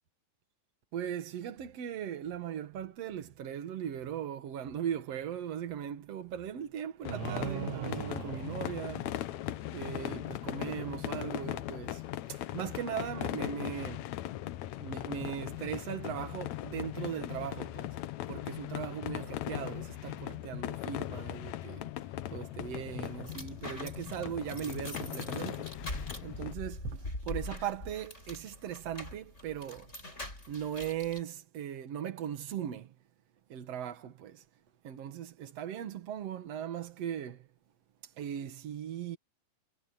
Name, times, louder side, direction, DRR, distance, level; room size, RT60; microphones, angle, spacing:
voice 1, 0.9-9.1 9.7-12.0 12.3-14.1 14.8-17.9 18.3-21.9 22.3-25.7 26.2-29.9 30.5-32.9 33.5-34.4 34.8-37.5 38.2-39.2, right 9 dB, 55° right, 2.3 m, -39 dB
sound 1, 7.0-26.5, left 14 dB, 75° left, 1.7 m, -39 dB
sound 2, 7.1-9.6, right 17 dB, 80° right, 1.8 m, -40 dB
sound 3, 22.6-31.2, left 1 dB, 20° left, 7.3 m, -43 dB
omnidirectional pair, 4.2 m